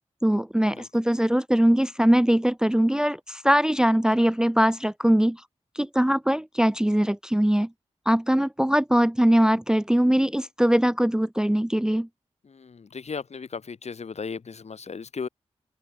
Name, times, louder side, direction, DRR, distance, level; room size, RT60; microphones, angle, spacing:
voice 1, 0.2-5.4 5.7-7.7 8.1-12.1, equal, 5° right, 0.5 m, -21 dB
voice 2, 12.4-15.3, left 5 dB, 70° left, 2.6 m, -36 dB
open air
cardioid pair, 65°, 12 cm